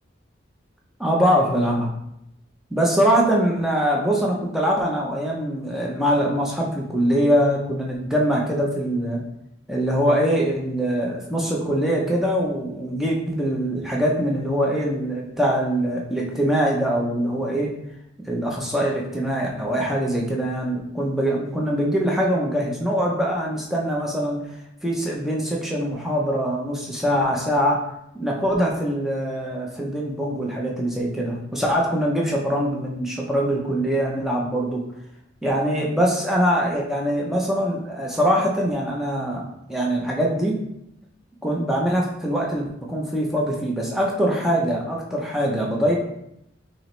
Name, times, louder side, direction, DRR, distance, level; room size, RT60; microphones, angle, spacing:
voice 1, 1.0-1.9 2.7-9.2 9.7-17.7 18.3-24.4 24.8-27.8 28.2-34.8 35.4-40.6 41.4-46.0, equal, ahead, -2 dB, 0.5 m, -23 dB
5.4 x 2.0 x 3.0 m, 0.80 s
head